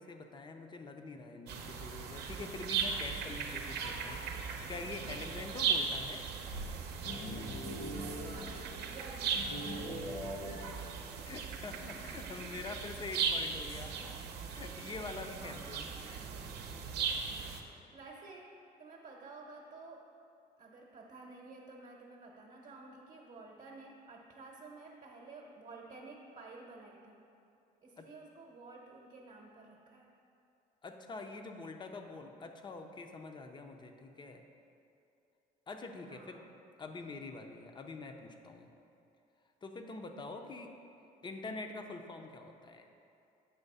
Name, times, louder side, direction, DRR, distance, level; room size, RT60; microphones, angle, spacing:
voice 1, 0.0-6.2 11.3-14.0 14.4-16.3 28.0-28.1 30.8-34.4 35.7-36.5 36.8-38.7 39.6-40.8 41.2-42.9, left 3 dB, 25° left, 5 dB, 0.5 m, -45 dB
sound 1, 1.5-17.6, right 6 dB, 75° right, 0.7 m, -38 dB
sound 2, 6.5-9.0 9.3-10.8, equal, 65° left, 1.4 m, -42 dB
voice 2, 8.0-10.8 15.4-15.9 17.9-18.5 18.8-20.0 20.6-27.2 27.8-30.1 36.1-36.5 40.3-40.4, right 3 dB, 45° right, -2 dB, 0.8 m, -52 dB
8.2 x 3.2 x 5.4 m, 2.7 s
cardioid pair, 110°, 17 cm